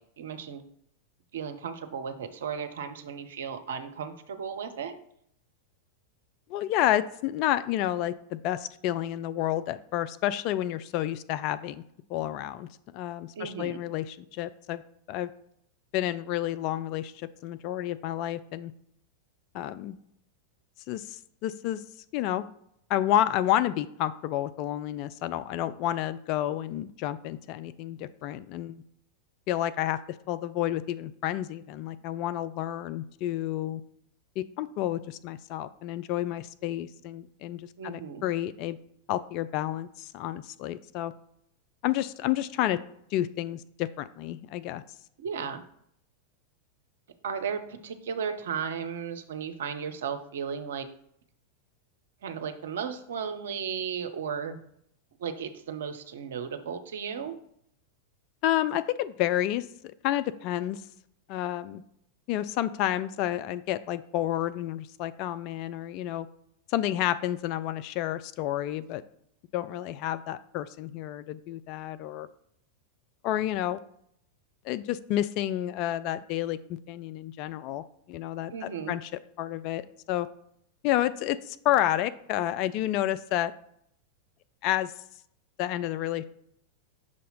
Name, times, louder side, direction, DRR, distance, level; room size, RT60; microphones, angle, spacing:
voice 1, 0.2-0.6 1.3-5.0 13.4-13.8 37.8-38.2 45.2-45.6 47.2-50.9 52.2-54.6 55.2-57.4 78.5-78.9, right 7 dB, 60° right, 8 dB, 0.6 m, -35 dB
voice 2, 6.5-11.8 12.1-14.8 15.1-15.3 15.9-18.7 19.5-20.0 20.9-21.8 22.1-22.4 22.9-28.8 29.5-30.0 30.3-33.8 34.4-38.8 39.1-41.1 41.8-42.8 43.1-44.8 58.4-59.7 60.0-60.8 61.3-61.8 62.3-66.3 66.7-69.0 69.5-72.3 73.2-73.8 74.6-76.6 76.9-79.1 79.4-79.8 80.1-80.3 80.8-83.5 84.6-84.9 85.6-86.2, left 13 dB, 40° left, 12 dB, 0.3 m, -30 dB
6.2 x 2.8 x 5.6 m, 0.71 s
figure-of-eight pair, 90°, 0 cm